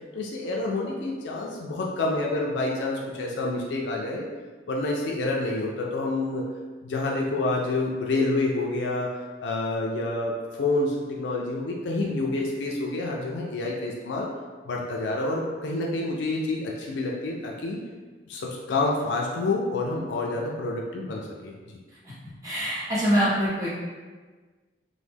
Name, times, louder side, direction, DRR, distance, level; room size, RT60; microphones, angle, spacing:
voice 1, 0.1-4.3 4.7-6.4 6.8-14.3 14.6-17.8 18.3-21.8, left 2 dB, 70° left, -1 dB, 0.4 m, -28 dB
voice 2, 22.4-23.7, equal, 20° right, -9 dB, 0.9 m, -24 dB
3.0 x 2.1 x 3.4 m, 1.4 s
head